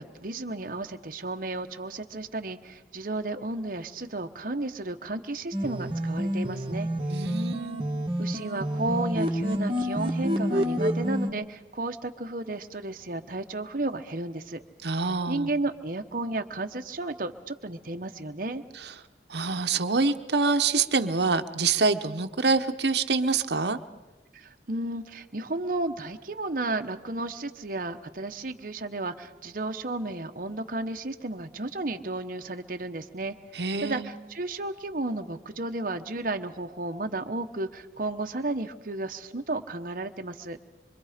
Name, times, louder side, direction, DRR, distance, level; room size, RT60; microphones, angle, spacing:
voice 1, 0.0-6.9 8.2-14.6 15.3-18.6 24.3-40.6, right 2 dB, 50° right, 6 dB, 1.1 m, -33 dB
sound 1, 5.5-11.3, equal, 30° right, 1.7 m, -28 dB
voice 2, 7.1-7.8 14.8-15.5 19.3-23.8 33.5-34.1, right 4 dB, 75° right, 8 dB, 1.0 m, -26 dB
25.5 x 25.0 x 5.1 m, 1.1 s
head